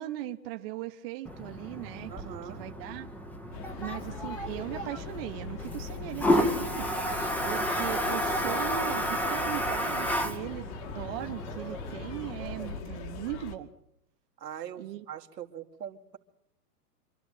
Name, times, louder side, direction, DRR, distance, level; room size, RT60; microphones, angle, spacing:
voice 1, 0.0-3.1 3.8-6.9 7.4-13.7 14.8-15.0, right 14 dB, 35° right, 5 dB, 1.2 m, -38 dB
Toilet flush, 1.2-12.8, equal, 5° left, 0.9 m, -32 dB
voice 2, 2.1-2.6 14.4-16.2, right 9 dB, 85° right, 4 dB, 2.2 m, -42 dB
sound 1, 3.5-13.6, left 5 dB, 45° left, 2.3 m, -41 dB
26.5 x 12.0 x 9.4 m, 0.78 s
hypercardioid pair, 150°, 48 cm